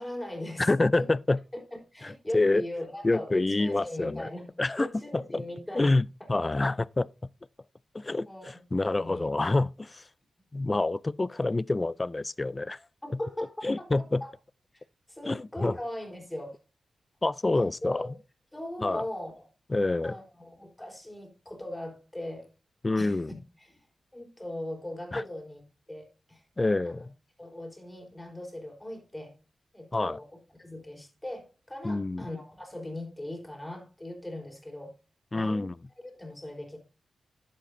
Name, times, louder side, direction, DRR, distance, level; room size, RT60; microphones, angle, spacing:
voice 1, 0.0-0.7 1.0-1.1 1.9-4.5 4.8-5.9 8.3-8.5 8.8-9.2 13.0-14.3 14.7-16.6 17.8-18.1 18.5-19.5 20.0-22.5 23.0-23.8 24.1-25.6 25.9-26.5 26.8-27.1 27.4-29.3 29.7-30.3 30.6-35.0 35.3-35.7 36.1-36.8, left 1 dB, 10° left, 4.0 m, -39 dB
voice 2, 0.6-1.4 2.0-2.6 3.0-4.3 4.6-4.9 5.3-5.4 5.8-7.1 7.9-10.1 10.5-12.8 13.6-14.2 15.3-15.8 17.2-18.0 18.8-19.1 19.7-20.2 22.8-23.3 25.1-25.2 26.6-27.1 29.9-30.2 31.8-32.3 35.3-35.8, left 2 dB, 30° left, 0.3 m, -27 dB
11.5 x 7.7 x 2.6 m
cardioid pair, 60°, 0 cm